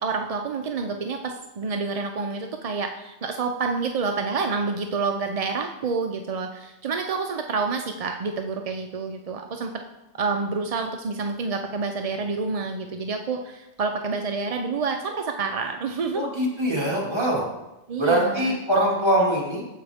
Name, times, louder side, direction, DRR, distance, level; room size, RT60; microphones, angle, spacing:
voice 1, 0.0-9.7 10.2-16.2 17.9-18.6, right 4 dB, 50° right, 4 dB, 0.4 m, -28 dB
voice 2, 16.1-17.4 18.0-19.6, right 1 dB, 20° right, -4 dB, 2.3 m, -23 dB
15.0 x 5.1 x 3.5 m, 0.96 s
omnidirectional pair, 1.3 m